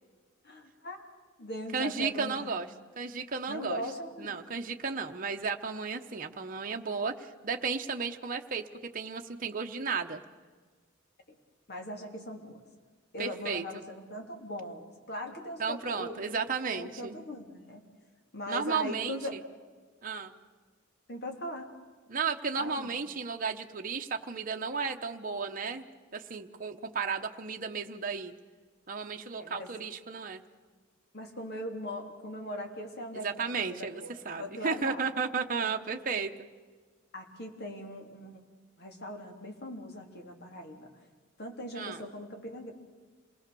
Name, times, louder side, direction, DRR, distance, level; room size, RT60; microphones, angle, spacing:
voice 1, 0.4-1.0 1.4-2.5 3.5-4.4 11.7-12.6 13.1-16.3 16.7-17.8 18.3-19.3 21.1-21.7 22.6-22.9 29.4-29.7 31.1-35.0 35.6-35.7 37.1-38.4 38.8-40.9 41.4-42.7, left 1 dB, 50° left, 3 dB, 3.2 m, -40 dB
voice 2, 1.7-2.7 3.0-3.8 4.2-10.2 13.2-13.8 15.6-17.2 18.5-19.4 20.0-20.3 22.1-25.8 26.1-28.3 28.9-30.4 33.1-36.3 41.7-42.1, right 5 dB, 40° right, 4 dB, 1.0 m, -34 dB
27.5 x 19.5 x 6.9 m, 1.4 s
head